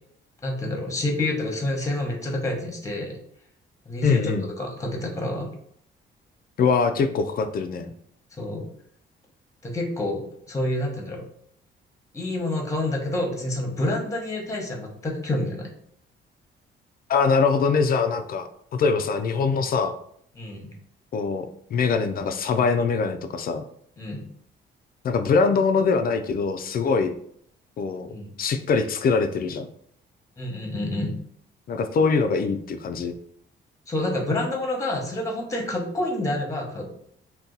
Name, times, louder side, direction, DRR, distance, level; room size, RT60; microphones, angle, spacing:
voice 1, 0.4-3.2 3.9-5.5 8.4-8.7 9.6-10.2 10.5-11.2 12.1-15.7 20.4-20.7 24.0-24.2 28.1-28.3 30.4-31.1 33.9-36.8, left 1 dB, 15° left, 1 dB, 0.9 m, -28 dB
voice 2, 4.0-4.5 6.6-7.9 17.1-19.9 21.1-23.6 25.0-27.1 27.8-28.1 28.4-29.7 31.7-33.2, left 5 dB, 50° left, 8 dB, 0.4 m, -23 dB
2.7 x 2.2 x 3.8 m, 0.66 s
cardioid pair, 90°, 20 cm